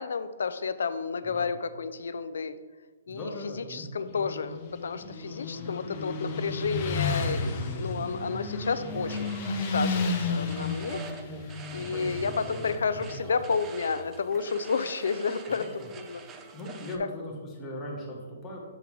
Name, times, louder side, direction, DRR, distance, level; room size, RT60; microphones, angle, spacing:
voice 1, 0.0-2.6 3.1-3.3 3.6-11.0 11.7-16.2 17.0-17.1, left 5 dB, 75° left, 12 dB, 0.4 m, -31 dB
voice 2, 3.1-3.9 5.5-5.7 8.8-9.0 11.7-13.1 15.5-15.9 16.5-18.6, equal, 10° left, -4 dB, 1.1 m, -40 dB
Motorcycle, 4.0-13.8, left 3 dB, 25° left, 0.7 m, -33 dB
sound 1, 8.9-17.0, right 4 dB, 10° right, 0.3 m, -46 dB
7.2 x 3.7 x 4.7 m, 1.4 s
hypercardioid pair, 175°, 0 cm